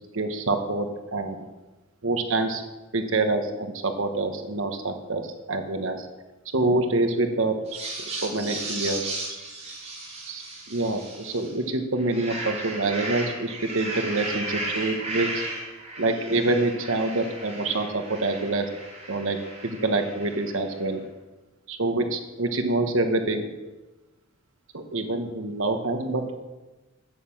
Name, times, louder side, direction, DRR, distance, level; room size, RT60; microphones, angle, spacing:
voice 1, 0.0-1.3 2.0-2.6 2.9-6.1 6.5-7.6 8.0-9.1 10.3-10.4 10.7-15.3 16.0-18.6 19.1-19.4 19.6-21.0 21.7-23.4 24.7-26.3, right 2 dB, 75° right, 6 dB, 1.4 m, -26 dB
sound 1, 7.7-11.6 12.0-20.6, right 2 dB, 35° right, 4.5 m, -35 dB
13.5 x 9.9 x 7.2 m, 1.1 s
head